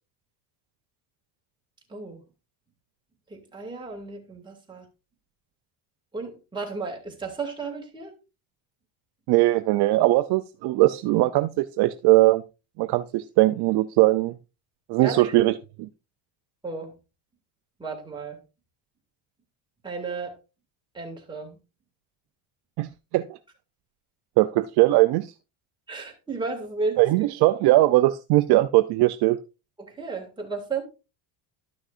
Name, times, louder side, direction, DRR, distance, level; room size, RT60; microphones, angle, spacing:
voice 1, 1.9-2.2 3.3-4.9 6.1-8.1 15.0-15.4 16.6-16.9 17.8-18.4 19.8-20.4 20.9-21.6 25.9-27.0 29.8-30.8, right 4 dB, 10° right, 2.3 m, -33 dB
voice 2, 9.3-12.4 12.8-14.3 14.9-15.6 22.8-22.9 23.1-23.2 24.4-25.3 27.0-29.4, right 18 dB, 55° right, 0.5 m, -20 dB
12.5 x 6.3 x 2.5 m
cardioid pair, 140°, 47 cm